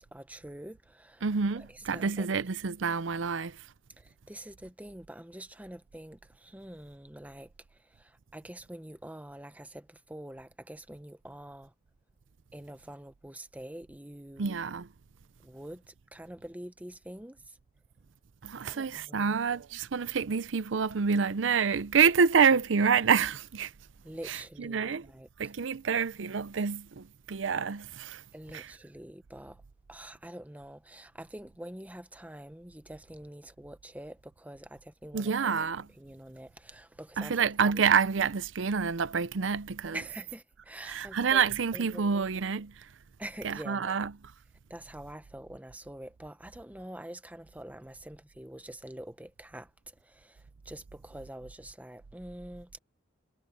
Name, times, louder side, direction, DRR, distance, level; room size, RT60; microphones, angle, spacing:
voice 1, 0.0-1.3 1.5-2.3 4.0-11.7 12.5-14.5 15.4-17.6 18.6-19.4 24.0-25.3 28.3-29.6 29.9-35.5 35.9-37.4 37.7-37.8 39.9-41.5 41.7-42.2 43.2-44.1 44.7-52.8, right 1 dB, 10° right, 1.0 m, -46 dB
voice 2, 1.2-3.5 14.4-14.9 18.4-23.7 24.3-25.0 25.4-28.2 35.1-35.9 37.2-40.0 40.9-42.7 43.4-44.1, right 6 dB, 90° right, 0.6 m, -27 dB
head